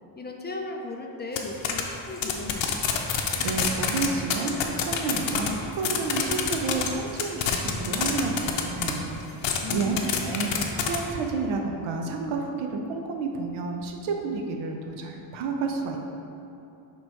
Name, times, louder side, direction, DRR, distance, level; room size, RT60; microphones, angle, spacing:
voice 1, 0.2-3.0 9.6-10.5, left 3 dB, 25° left, 2 dB, 0.3 m, -37 dB
sound 1, 1.4-1.5 1.6-1.8 2.2-5.5 5.8-6.9 7.2-8.9 9.4-11.0, left 9 dB, 65° left, 0.7 m, -25 dB
voice 2, 3.4-16.0, right 4 dB, 75° right, 2 dB, 0.8 m, -30 dB
6.5 x 3.2 x 4.5 m, 2.8 s
cardioid pair, 130°, 49 cm